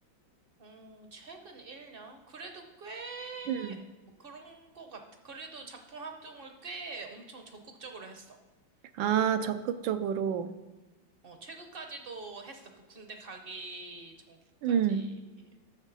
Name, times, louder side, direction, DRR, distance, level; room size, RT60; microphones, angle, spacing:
voice 1, 0.6-3.8 4.2-8.4 11.2-14.4 14.6-15.6, right 3 dB, 45° right, 4 dB, 0.8 m, -45 dB
voice 2, 9.0-10.5 14.6-15.0, right 8 dB, 80° right, 9 dB, 1.3 m, -28 dB
13.0 x 6.2 x 4.0 m, 1.2 s
omnidirectional pair, 2.1 m